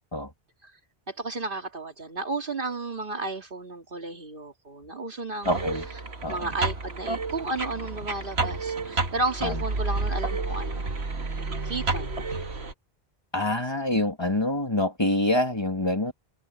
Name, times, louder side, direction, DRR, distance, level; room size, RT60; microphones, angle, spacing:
voice 1, 1.1-5.7 5.9-6.0 6.3-10.9 11.6-12.1, right 2 dB, 55° right, 2.5 m, -33 dB
sound 1, 5.4-12.7, right 3 dB, 85° right, 2.1 m, -30 dB
voice 2, 5.5-5.8 6.2-6.3 9.4-9.5 13.3-16.1, left 1 dB, 25° left, 2.3 m, -25 dB
omnidirectional pair, 1.1 m